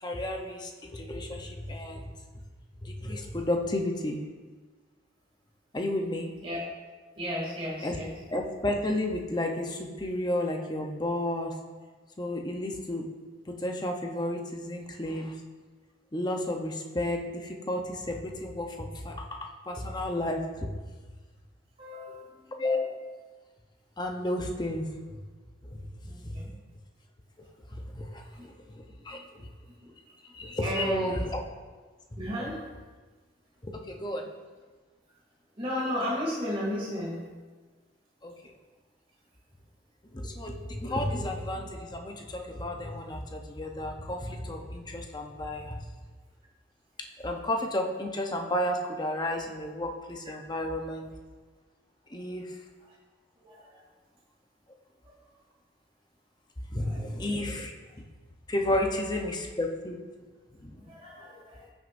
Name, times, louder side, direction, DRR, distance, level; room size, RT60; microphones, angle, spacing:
voice 1, 0.0-2.1 2.8-4.2 5.7-6.3 7.8-8.0 8.3-11.5 12.2-13.1 13.6-15.3 16.1-20.7 22.6-23.0 24.0-24.9 26.2-26.4 27.7-28.2 29.0-29.2 30.3-31.4 32.1-32.3 33.6-34.3 38.2-38.3 40.1-45.8 47.2-51.1 52.1-52.5 56.7-57.7 58.5-60.0 60.6-60.7, left 1 dB, 20° left, 2 dB, 0.8 m, -32 dB
voice 2, 7.2-8.1 21.8-22.4 26.0-26.5 28.4-28.5 29.8-29.9 30.6-31.2 32.2-32.7 35.6-37.3 53.4-53.6 56.8-57.3 60.9-61.6, equal, 30° right, -5 dB, 2.6 m, -34 dB
15.0 x 6.3 x 2.6 m, 1.4 s
head